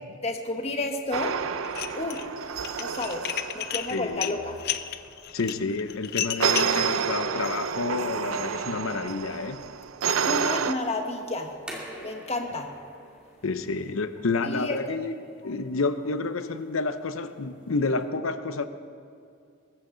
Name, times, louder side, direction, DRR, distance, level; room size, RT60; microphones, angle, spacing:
voice 1, 0.2-1.4 1.9-2.2 2.8-3.3 3.5-4.6 10.2-11.5 12.0-12.7 14.4-15.0, left 2 dB, 30° left, 1.4 m, -31 dB
sound 1, 1.1-4.3 6.4-10.7, right 6 dB, 85° right, 0.6 m, -29 dB
Dishes pots and pans, 1.6-2.3 2.6-6.8, left 11 dB, 50° left, 0.5 m, -32 dB
voice 2, 3.9-4.4 5.3-9.7 13.4-15.1 15.4-18.7, left 3 dB, 85° left, 0.8 m, -29 dB
sound 2, 11.4-18.1, right 1 dB, 5° right, 2.3 m, -47 dB
22.0 x 14.5 x 3.9 m
head